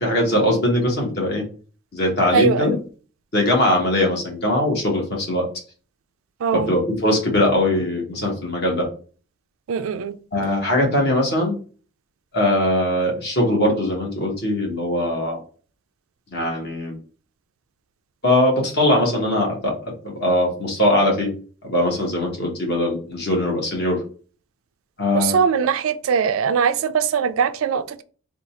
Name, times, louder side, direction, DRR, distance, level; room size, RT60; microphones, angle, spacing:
voice 1, 0.0-1.4 1.9-2.7 3.3-5.5 6.5-8.9 10.3-11.6 12.3-15.4 16.3-16.9 18.2-19.7 20.0-21.3 21.6-24.0 25.0-25.4, left 1 dB, 50° left, 1.3 m, -21 dB
voice 2, 2.3-2.8 6.4-6.7 9.7-10.2 25.1-28.0, right 6 dB, 70° right, 0.3 m, -21 dB
3.7 x 2.4 x 4.2 m
head